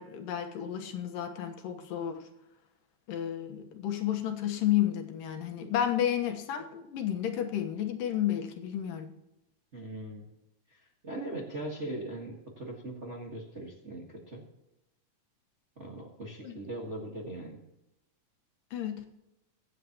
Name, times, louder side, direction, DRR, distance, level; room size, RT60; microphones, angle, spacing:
voice 1, 0.0-2.3 3.1-9.1 16.4-16.6 18.7-19.1, left 11 dB, 85° left, 4 dB, 2.9 m, -31 dB
voice 2, 9.7-10.3 10.7-14.4 15.8-17.6, right 1 dB, 35° right, -2 dB, 1.2 m, -40 dB
23.0 x 9.2 x 3.0 m, 0.91 s
omnidirectional pair, 3.9 m